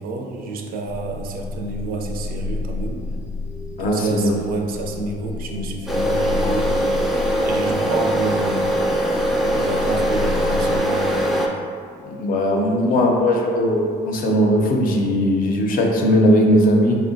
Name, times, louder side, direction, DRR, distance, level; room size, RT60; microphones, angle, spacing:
voice 1, 0.0-3.0 3.7-6.9 7.4-8.7 9.4-11.1 11.3-11.5 12.8-12.9, right 3 dB, 60° right, 2 dB, 0.5 m, -29 dB
sound 1, 0.9-10.8, left 3 dB, 90° right, 0.8 m, -31 dB
voice 2, 3.8-4.3 12.1-17.0, equal, 55° left, 0 dB, 0.6 m, -18 dB
sound 2, 5.9-11.5, right 1 dB, ahead, 0.4 m, -21 dB
5.0 x 2.1 x 2.5 m, 2.3 s
cardioid pair, 110°, 17 cm